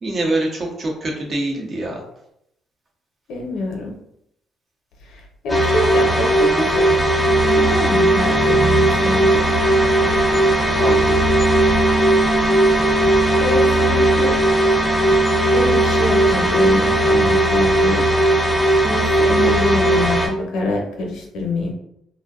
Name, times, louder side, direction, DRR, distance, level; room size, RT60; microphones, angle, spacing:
voice 1, 0.0-2.0 10.7-11.3 19.3-20.0, right 2 dB, 45° right, -1 dB, 0.7 m, -25 dB
voice 2, 3.3-3.9 5.1-7.0 7.4-9.5 13.3-14.3 15.5-18.1 18.8-21.7, left 2 dB, 80° left, 0 dB, 0.6 m, -25 dB
sound 1, 5.5-20.3, right 1 dB, 15° left, 0.6 m, -17 dB
sound 2, 7.3-17.3, right 3 dB, 85° right, 0.5 m, -27 dB
2.5 x 2.1 x 2.3 m, 0.77 s
cardioid pair, 85°, 0 cm